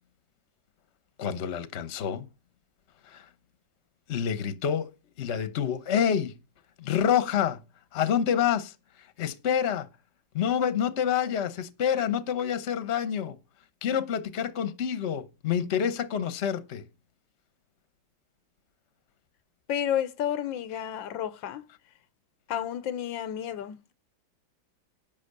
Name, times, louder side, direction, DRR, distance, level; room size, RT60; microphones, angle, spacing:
voice 1, 1.2-2.3 3.1-3.3 4.1-4.9 5.2-6.4 6.8-7.6 7.9-8.7 9.2-9.9 10.3-13.4 13.8-16.8, left 8 dB, 45° left, 1.1 m, -27 dB
voice 2, 19.7-21.7 22.5-23.9, left 10 dB, 85° left, 1.5 m, -31 dB
11.0 x 6.4 x 6.7 m
omnidirectional pair, 2.0 m